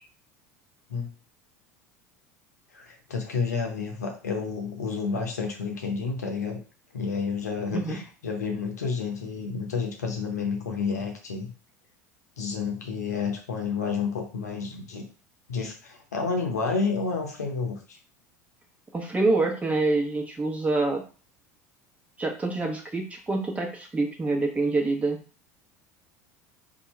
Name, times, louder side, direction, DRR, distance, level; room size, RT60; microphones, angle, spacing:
voice 1, 2.7-6.6 6.9-11.5 12.4-15.0 15.5-18.0, left 5 dB, 85° left, 2 dB, 0.8 m, -30 dB
voice 2, 18.9-21.0 22.2-25.2, right 2 dB, 15° right, 1 dB, 1.1 m, -26 dB
2.7 x 2.5 x 4.3 m, 0.36 s
hypercardioid pair, 75°, 9 cm